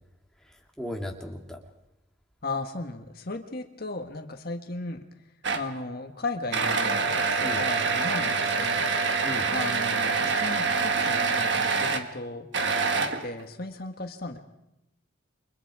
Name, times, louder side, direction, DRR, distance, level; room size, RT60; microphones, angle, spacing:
voice 1, 0.4-1.6 7.4-7.6 9.2-9.5, left 1 dB, 5° left, 1 dB, 2.5 m, -36 dB
voice 2, 2.4-5.1 5.5-9.1 9.5-12.5 12.9-14.4, left 2 dB, 50° left, 5 dB, 1.5 m, -36 dB
sound 1, 5.4-5.8 6.5-12.1 12.5-13.4, right 4 dB, 60° right, 1.5 m, -26 dB
29.0 x 25.0 x 4.9 m, 0.88 s
head